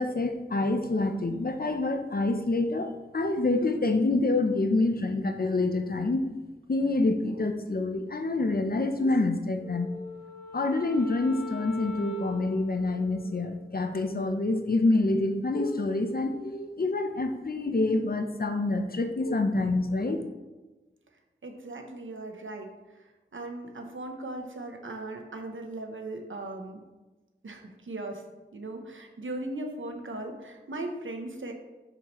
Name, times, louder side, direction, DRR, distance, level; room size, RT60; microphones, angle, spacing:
voice 1, 0.0-6.3 6.7-9.9 10.5-20.3, left 2 dB, 50° left, 6 dB, 0.7 m, -27 dB
Wind instrument woodwind instrument, 9.6-14.0, left 1 dB, 80° left, 0.9 m, -43 dB
voice 2, 21.4-26.8 27.4-28.2 28.5-31.5, right 2 dB, 85° right, 3 dB, 0.9 m, -38 dB
6.6 x 5.8 x 3.1 m, 1.2 s
wide cardioid pair, 65°, 20 cm